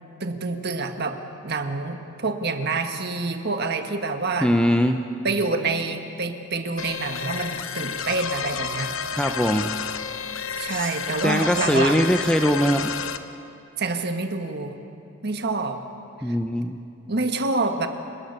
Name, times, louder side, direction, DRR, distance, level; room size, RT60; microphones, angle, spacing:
voice 1, 0.2-1.2 1.4-4.5 5.2-9.0 10.6-12.1 13.8-14.8 15.2-15.8 16.3-16.4 17.1-17.9, right 3 dB, 50° right, 6 dB, 1.6 m, -27 dB
voice 2, 4.4-5.0 9.1-9.8 10.7-10.9 11.2-12.9 16.2-16.8, equal, 5° left, 5 dB, 0.6 m, -21 dB
sound 1, 6.8-13.2, left 6 dB, 65° left, 1.0 m, -31 dB
29.5 x 18.5 x 6.7 m, 2.6 s
head